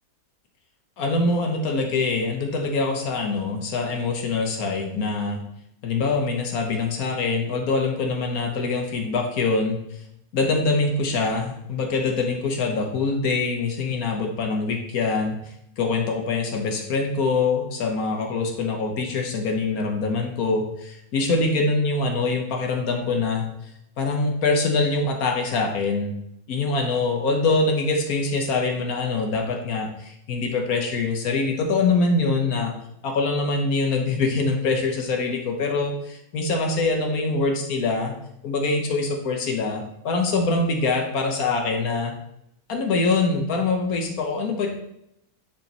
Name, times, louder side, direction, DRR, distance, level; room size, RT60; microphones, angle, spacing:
voice 1, 1.0-5.4 5.8-9.8 10.3-15.4 15.8-23.5 24.0-26.1 26.5-32.7 33.0-38.1 38.4-42.1 42.7-44.7, left 3 dB, 80° left, 2 dB, 1.5 m, -24 dB
10.0 x 5.1 x 3.0 m, 0.78 s
omnidirectional pair, 1.5 m